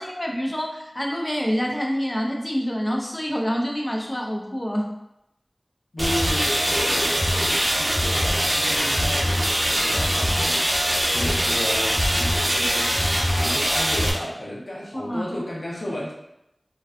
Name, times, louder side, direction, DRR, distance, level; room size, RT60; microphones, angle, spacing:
voice 1, 0.0-4.9 14.9-15.2, equal, 30° left, 0 dB, 0.4 m, -27 dB
voice 2, 5.9-13.0 13.4-16.1, left 1 dB, 90° left, -5 dB, 0.6 m, -32 dB
sound 1, 6.0-14.1, equal, 40° right, 0.5 m, -22 dB
2.5 x 2.2 x 2.3 m, 0.85 s
wide cardioid pair, 45°, 0 cm